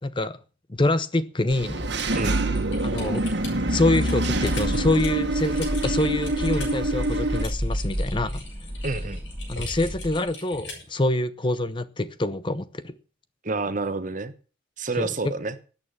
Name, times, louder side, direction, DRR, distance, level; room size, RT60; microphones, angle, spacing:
voice 1, 0.0-0.4 0.7-1.8 2.8-3.2 3.7-8.4 9.5-12.9 15.0-15.1, left 2 dB, 25° left, 0.7 m, -25 dB
Engine / Mechanisms, 1.5-7.4, right 1 dB, 65° right, 1.7 m, -26 dB
Typing, 1.9-10.9, left 3 dB, 75° left, 7.6 m, -40 dB
sound 1, 4.3-10.3, equal, 10° right, 2.3 m, -32 dB
voice 2, 8.8-9.2 13.4-14.3 14.8-15.6, right 3 dB, 45° right, 1.2 m, -28 dB
13.0 x 8.8 x 7.4 m
head